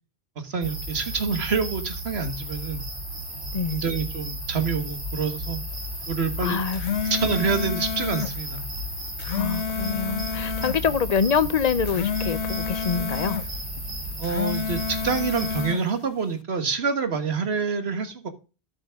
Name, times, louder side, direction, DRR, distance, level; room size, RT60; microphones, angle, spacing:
voice 1, 0.4-2.8 3.3-5.6 6.1-6.6 7.0-8.6 14.2-18.3, right 5 dB, 70° right, 1.8 m, -27 dB
sound 1, 0.6-15.6, equal, 55° right, 7.1 m, -34 dB
voice 2, 6.4-7.1 9.3-13.4, left 6 dB, 45° left, 0.7 m, -26 dB
sound 2, 6.5-8.4 9.0-10.8 11.7-13.5 14.1-15.9, left 7 dB, 85° left, 0.9 m, -29 dB
13.0 x 6.6 x 3.6 m
omnidirectional pair, 1.1 m